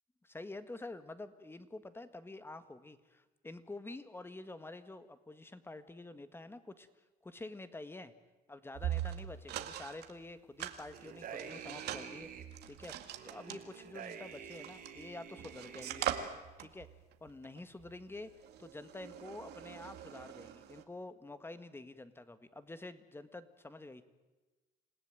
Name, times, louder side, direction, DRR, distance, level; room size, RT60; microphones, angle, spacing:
voice 1, 0.2-6.9 7.2-8.1 8.5-12.3 12.7-16.1 16.6-16.9 17.2-18.3 18.6-24.0, left 2 dB, 15° left, 11 dB, 1.7 m, -48 dB
sound 1, 8.7-10.1 10.6-15.1 15.4-20.8, right 11 dB, 75° right, 2.0 m, -42 dB
sound 2, 10.9-12.4 13.1-16.3, right 7 dB, 60° right, 3.6 m, -48 dB
27.5 x 17.5 x 9.2 m, 1.2 s
cardioid pair, 110°, 17 cm